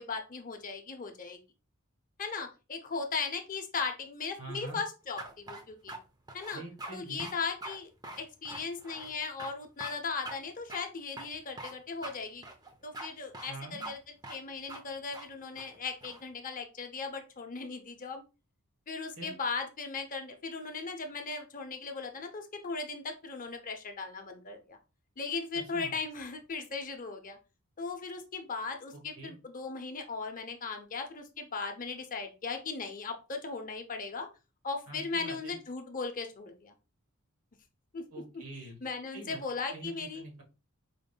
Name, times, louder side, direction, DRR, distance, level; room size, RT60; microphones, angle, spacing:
voice 1, 0.0-1.4 2.2-5.9 6.3-6.6 6.9-7.9 8.2-12.4 12.8-14.0 14.3-18.2 18.9-24.8 25.2-27.4 27.8-34.3 34.6-36.7 37.9-38.0 38.3-38.4 38.8-40.2, left 4 dB, 40° left, 5 dB, 0.7 m, -37 dB
voice 2, 4.4-4.8 6.5-7.3 13.5-13.9 19.2-19.3 25.5-25.9 28.9-29.3 34.9-35.6 38.1-38.8 39.1-39.4 39.7-40.4, right 3 dB, 70° right, -1 dB, 1.7 m, -45 dB
sound 1, 5.2-6.0 6.3-6.9 7.2-7.3 7.6-7.8 8.0-9.1 9.4-9.5 9.8-9.9 10.2-10.4 10.7-10.8 11.2-11.7 12.0-12.2 12.4-13.1 13.3-13.5 13.8-13.9 14.2-14.4 14.7-14.8 15.1-15.3 15.6-16.2, right 2 dB, 20° right, 0.6 m, -43 dB
4.9 x 3.5 x 2.2 m, 0.29 s
head